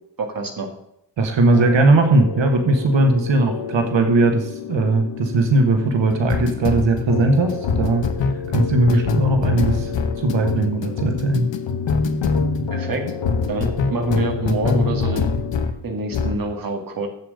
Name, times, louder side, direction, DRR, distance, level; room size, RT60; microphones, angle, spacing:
voice 1, 0.2-0.7 8.9-9.0 12.7-13.0 13.5-15.3 15.8-17.1, right 3 dB, 50° right, 3 dB, 2.1 m, -26 dB
voice 2, 1.2-8.0 8.5-9.9 10.2-11.5, right 2 dB, 90° right, 4 dB, 1.6 m, -18 dB
sound 1, 1.5-15.8 16.1-16.4, left 4 dB, 80° left, 1.1 m, -25 dB
8.1 x 7.5 x 6.4 m, 0.77 s
wide cardioid pair, 150°, 43 cm